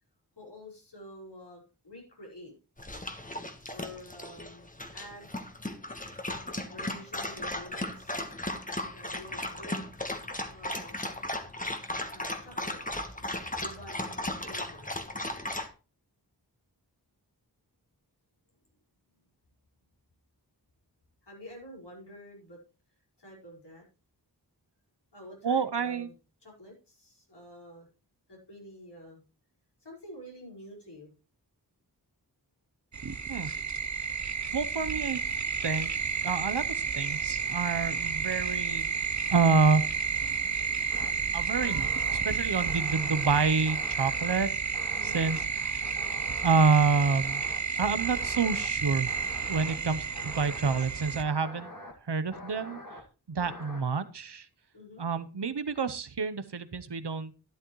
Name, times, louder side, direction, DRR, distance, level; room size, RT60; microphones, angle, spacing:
voice 1, 0.4-2.5 3.7-5.3 6.4-8.2 8.9-9.9 10.5-11.2 12.1-12.8 13.6-14.9 21.2-22.6 23.2-23.9 25.1-26.1 26.4-27.9 28.3-29.2 29.8-31.1 44.9-45.2 54.7-55.1, equal, 80° left, -2 dB, 5.2 m, -48 dB
Dog, 2.8-15.7, left 1 dB, 20° left, 1.4 m, -36 dB
voice 2, 25.4-26.1 33.3-33.5 34.5-35.2 35.6-35.9 36.2-38.9 39.3-39.8 41.3-44.5 45.0-45.9 46.4-47.4 47.7-49.1 49.5-51.7 52.1-52.8 53.3-54.5 55.0-57.3, right 4 dB, 80° right, 12 dB, 0.9 m, -28 dB
sound 1, 32.9-51.2, right 5 dB, 45° right, 0.7 m, -31 dB
sound 2, 40.9-41.1 41.5-42.2 42.6-43.3 43.7-44.4 44.7-45.4 45.8-46.5 46.9-47.6 48.0-48.7 49.1-49.8 50.2-50.9 51.2-51.9 52.3-53.0 53.4-53.8, left 1 dB, 55° left, 2.1 m, -45 dB
12.0 x 11.0 x 3.1 m, 0.33 s
wide cardioid pair, 50°, 40 cm